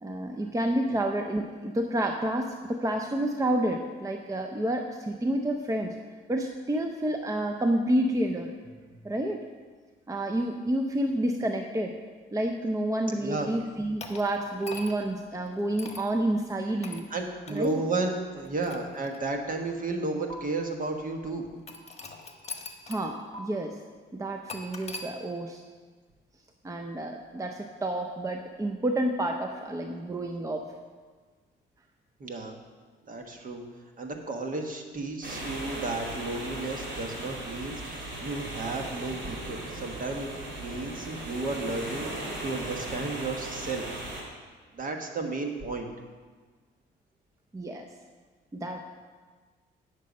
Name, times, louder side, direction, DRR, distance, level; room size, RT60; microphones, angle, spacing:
voice 1, 0.0-6.0 6.3-9.4 10.1-12.0 12.3-17.1 17.5-17.8 22.9-23.8 24.1-25.6 26.6-30.7 47.5-47.9 48.5-48.8, right 1 dB, 15° right, 4 dB, 0.6 m, -29 dB
voice 2, 13.2-13.5 17.1-21.5 32.2-32.5 33.1-33.6 34.0-40.3 40.6-44.0 44.7-45.9, right 3 dB, 45° right, 4 dB, 1.4 m, -33 dB
sound 1, 14.0-15.1 15.8-16.1 16.8-17.1 17.5-17.7 18.4-19.5 20.3-20.4 21.7-23.1 23.3-23.4 24.5-25.1, left 3 dB, 35° left, 1.2 m, -42 dB
sound 2, 35.2-44.2, right 1 dB, 60° right, 2.7 m, -37 dB
9.6 x 6.7 x 5.3 m, 1.5 s
cardioid pair, 90°, 20 cm